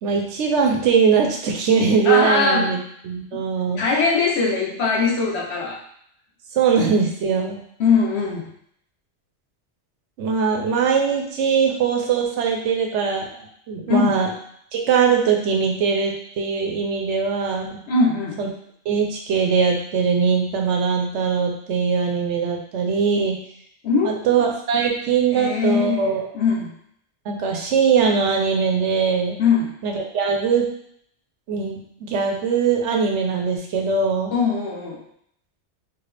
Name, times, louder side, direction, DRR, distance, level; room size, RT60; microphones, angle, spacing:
voice 1, 0.0-2.8 3.0-3.9 6.5-7.6 10.2-14.3 14.7-17.8 18.4-18.5 18.9-23.4 24.0-26.3 27.3-29.4 29.8-30.7 31.5-34.3, right 6 dB, 80° right, 2 dB, 1.0 m, -21 dB
voice 2, 2.1-2.8 3.3-3.4 3.8-5.8 7.8-8.5 13.9-14.2 17.9-18.4 23.8-24.2 25.3-26.1 26.3-26.7 29.4-29.7 34.3-35.0, left 4 dB, 70° left, -1 dB, 1.1 m, -21 dB
4.0 x 2.4 x 3.3 m, 0.68 s
omnidirectional pair, 1.2 m